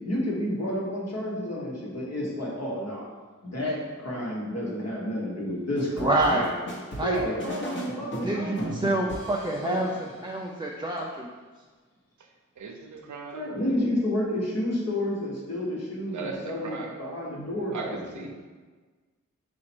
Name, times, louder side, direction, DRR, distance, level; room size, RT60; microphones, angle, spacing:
voice 1, 0.0-3.1 3.4-6.5 7.0-8.8 9.6-9.8 13.3-18.3, left 1 dB, 55° left, -3 dB, 1.2 m, -30 dB
sound 1, 5.8-10.1, equal, 40° left, 1.0 m, -36 dB
voice 2, 6.0-6.5 7.0-7.2 8.2-11.3, right 1 dB, 15° right, -2 dB, 0.3 m, -27 dB
voice 3, 12.6-13.9 16.1-17.0 17.7-18.3, right 4 dB, 70° right, 3 dB, 0.6 m, -38 dB
4.1 x 2.5 x 4.3 m, 1.4 s
wide cardioid pair, 75°, 30 cm